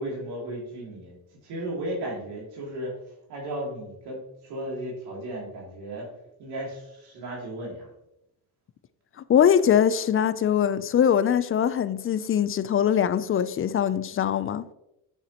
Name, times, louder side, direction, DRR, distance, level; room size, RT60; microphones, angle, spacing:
voice 1, 0.0-6.1 6.4-7.9, right 1 dB, 85° right, 2.9 m, -35 dB
voice 2, 9.3-14.6, left 9 dB, 35° left, 0.4 m, -22 dB
9.1 x 5.3 x 2.9 m
cardioid pair, 90°, 38 cm